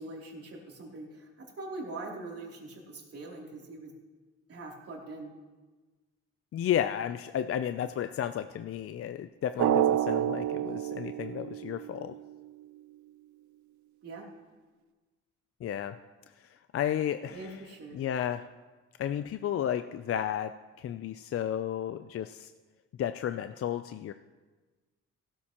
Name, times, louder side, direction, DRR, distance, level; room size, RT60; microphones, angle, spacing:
voice 1, 0.0-3.9 4.5-5.3 14.0-14.3 17.3-18.0, right 2 dB, 50° right, -2 dB, 3.1 m, -42 dB
voice 2, 6.5-12.1 15.6-15.9 16.4-17.6 17.9-18.4 19.0-20.5 20.8-22.5 23.0-24.1, left 10 dB, 50° left, 10 dB, 0.5 m, -33 dB
Drum, 9.6-12.2, right 11 dB, 70° right, 0.6 m, -28 dB
16.0 x 13.5 x 3.0 m, 1.3 s
cardioid pair, 90°, 30 cm